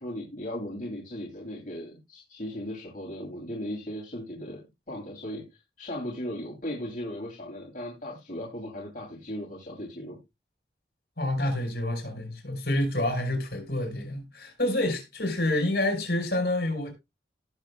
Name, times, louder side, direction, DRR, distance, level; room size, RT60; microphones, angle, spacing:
voice 1, 0.0-4.6 4.9-5.4 5.8-10.2, left 1 dB, 45° left, 2.8 m, -37 dB
voice 2, 11.2-16.9, left 1 dB, 65° left, 4.4 m, -28 dB
17.5 x 6.7 x 2.3 m
head